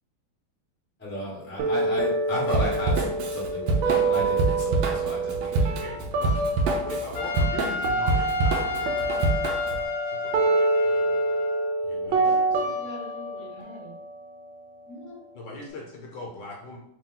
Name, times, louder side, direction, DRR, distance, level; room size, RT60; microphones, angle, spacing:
voice 1, 1.0-2.9 3.3-5.7, left 1 dB, 5° left, -5 dB, 0.9 m, -33 dB
sound 1, 1.6-7.6 7.8-15.6, right 2 dB, 85° right, 1.5 m, -27 dB
Drum kit / Drum, 2.5-9.8, right 3 dB, 70° right, 1.1 m, -27 dB
voice 2, 5.8-6.4 6.8-9.6 10.1-11.4 11.8-12.6 15.3-16.8, left 2 dB, 70° left, 0 dB, 1.3 m, -41 dB
Trumpet, 7.1-11.7, left 5 dB, 90° left, 1.4 m, -32 dB
voice 3, 12.1-13.9 14.9-15.2, left 1 dB, 45° left, -3 dB, 1.2 m, -42 dB
3.4 x 2.9 x 3.8 m, 0.76 s
omnidirectional pair, 2.1 m